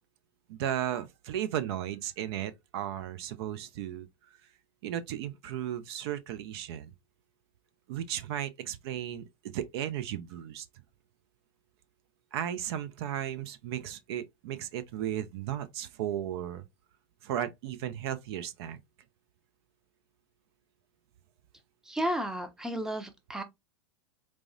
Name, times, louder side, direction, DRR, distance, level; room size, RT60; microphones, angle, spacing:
voice 1, 0.5-4.1 4.8-6.9 7.9-10.7 12.3-16.6 17.2-18.8, right 11 dB, 60° right, 0.5 m, -35 dB
voice 2, 21.8-23.4, equal, 5° right, 0.6 m, -33 dB
4.6 x 2.0 x 2.6 m
hypercardioid pair, 105°, 15 cm